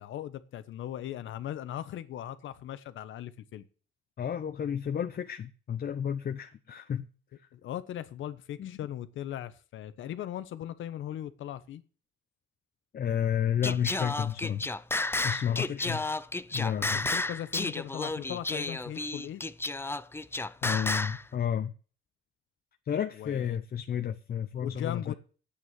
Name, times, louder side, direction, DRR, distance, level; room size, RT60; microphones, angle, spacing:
voice 1, 0.0-3.6 7.5-11.8 15.5-16.0 16.8-19.4 23.2-23.6 24.6-25.1, left 11 dB, 75° left, 1.2 m, -39 dB
voice 2, 4.2-7.1 8.6-8.8 12.9-14.7 15.2-16.0 16.5-17.1 20.6-21.7 22.9-25.1, left 9 dB, 50° left, 0.9 m, -31 dB
Singing, 13.6-21.2, left 2 dB, 10° left, 0.6 m, -32 dB
9.8 x 8.6 x 7.5 m
cardioid pair, 90°, 20 cm